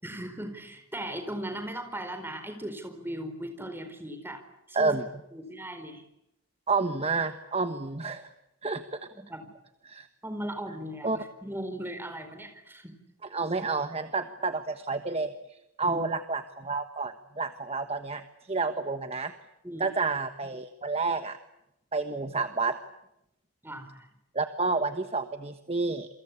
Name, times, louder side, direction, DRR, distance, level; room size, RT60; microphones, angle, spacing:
voice 1, 0.0-4.4 4.7-4.9 5.3-6.0 9.1-9.5 10.2-12.9 15.8-16.0 19.6-19.8 23.6-24.1, right 1 dB, 10° right, 6 dB, 4.5 m, -38 dB
voice 2, 4.7-5.0 6.7-8.3 8.6-9.0 9.8-10.1 11.0-11.2 13.3-18.2 18.5-19.3 19.8-21.4 21.9-22.8 24.3-26.1, right 3 dB, 25° right, 9 dB, 1.2 m, -30 dB
28.5 x 24.0 x 8.6 m, 0.86 s
head